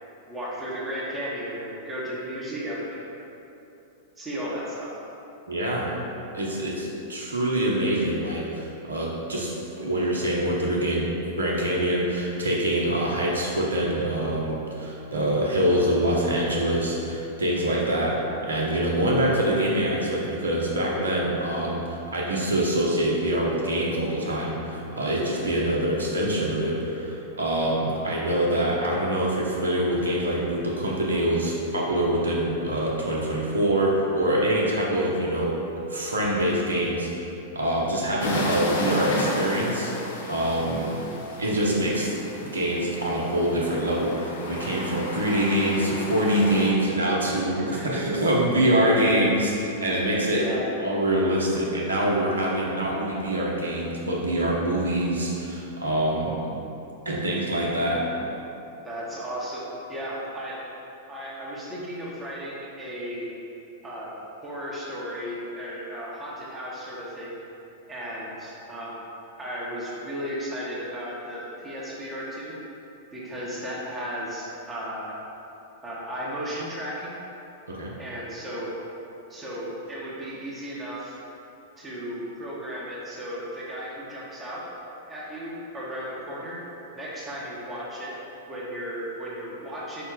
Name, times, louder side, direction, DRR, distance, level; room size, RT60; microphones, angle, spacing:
voice 1, 0.3-3.1 4.2-4.9 40.7-41.1 47.7-48.2 50.3-50.7 58.8-60.6 61.1-63.3 63.8-64.1 64.4-67.4 67.9-69.0 69.4-72.6 73.1-75.2 75.8-77.2 78.0-78.7 79.3-81.2 81.8-84.6 85.1-86.6 86.9-88.1 88.5-90.1, equal, 20° right, -7 dB, 1.0 m, -35 dB
voice 2, 5.5-5.9 6.3-11.1 11.3-18.2 18.4-35.6 35.9-37.2 37.5-40.9 41.4-42.1 42.4-50.4 50.8-56.4 57.0-58.0 77.7-77.9, right 1 dB, 85° right, -3 dB, 0.8 m, -25 dB
sound 1, 38.2-46.7, left 1 dB, 70° left, 0.6 m, -33 dB
5.0 x 2.2 x 4.6 m, 2.9 s
hypercardioid pair, 105°, 0 cm